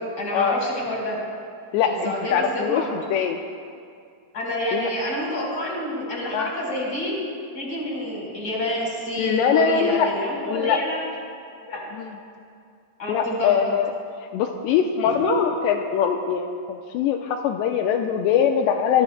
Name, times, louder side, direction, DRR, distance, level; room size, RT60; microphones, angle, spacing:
voice 1, 0.2-1.2 1.9-3.0 4.3-7.1 7.5-11.0 11.7-11.8 13.0-13.6 15.0-15.3, equal, 20° left, -3 dB, 4.1 m, -28 dB
voice 2, 1.7-3.4 4.7-4.9 6.3-6.5 9.2-10.1 10.5-10.8 11.9-12.2 13.1-13.9 14.3-19.0, left 8 dB, 85° left, 3 dB, 2.7 m, -22 dB
27.0 x 20.5 x 2.2 m, 2.3 s
omnidirectional pair, 5.2 m